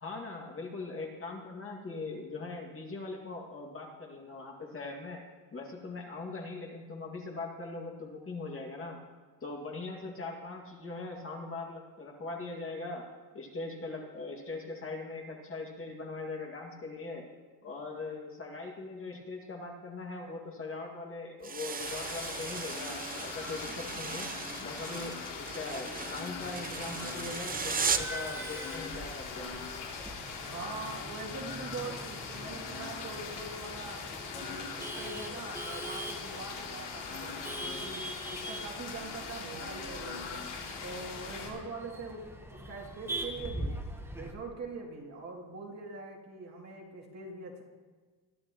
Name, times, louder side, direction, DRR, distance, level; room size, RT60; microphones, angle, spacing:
voice 1, 0.0-5.2 5.5-9.0 9.4-13.1 13.3-17.3 17.6-24.3 24.6-29.6, left 3 dB, 30° left, 0 dB, 2.1 m, -41 dB
sound 1, 21.4-28.2, right 5 dB, 20° right, 0.6 m, -37 dB
sound 2, 21.8-41.5, left 5 dB, 75° left, 3.0 m, -41 dB
Male speech man speaking / Laughter / Chatter, 26.8-44.3, right 1 dB, 5° right, 1.1 m, -43 dB
voice 2, 30.4-34.0 34.3-40.5 40.8-43.8 44.1-47.6, right 3 dB, 40° right, -2 dB, 2.6 m, -43 dB
22.0 x 11.5 x 3.0 m, 1.4 s
cardioid pair, 125°, 42 cm